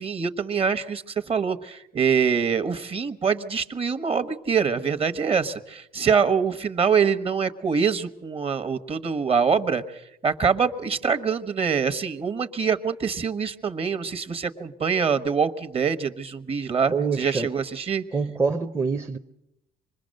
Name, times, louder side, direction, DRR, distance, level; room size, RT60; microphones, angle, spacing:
voice 1, 0.0-18.0, right 6 dB, 35° right, 1.2 m, -24 dB
voice 2, 16.9-17.5 18.1-19.2, right 4 dB, 15° right, 0.7 m, -25 dB
26.0 x 21.0 x 6.5 m
cardioid pair, 110°, 17 cm